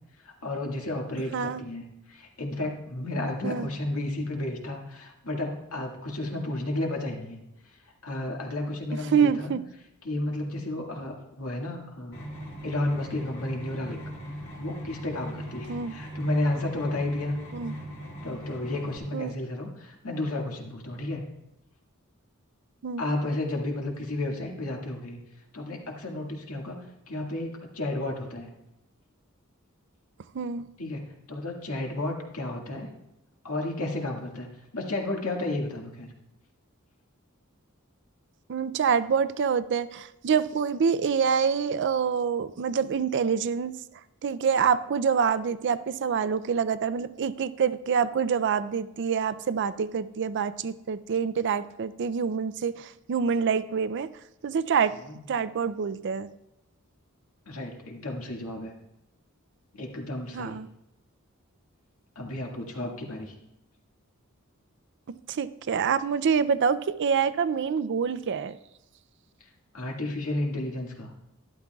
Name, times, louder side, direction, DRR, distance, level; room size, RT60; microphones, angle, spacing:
voice 1, 0.2-7.4 7.6-7.8 8.0-9.5 10.0-12.3 12.6-14.0 14.6-17.4 18.2-21.3 23.0-25.2 25.5-28.5 30.8-31.0 31.3-32.9 33.4-34.5 34.7-36.1 55.0-55.2 57.5-58.7 59.7-60.6 62.2-63.3 69.4-69.5 69.7-71.1, left 1 dB, 85° left, 0 dB, 1.9 m, -32 dB
voice 2, 9.1-9.6 15.7-15.9 17.5-17.7 19.1-19.3 22.8-23.0 30.3-30.6 38.5-43.7 44.2-54.1 54.4-54.9 55.3-56.3 60.3-60.7 65.3-68.6, right 6 dB, 55° right, 15 dB, 0.4 m, -26 dB
sound 1, 12.1-19.0, equal, 55° left, 2.4 m, -39 dB
12.0 x 12.0 x 2.3 m, 0.89 s
head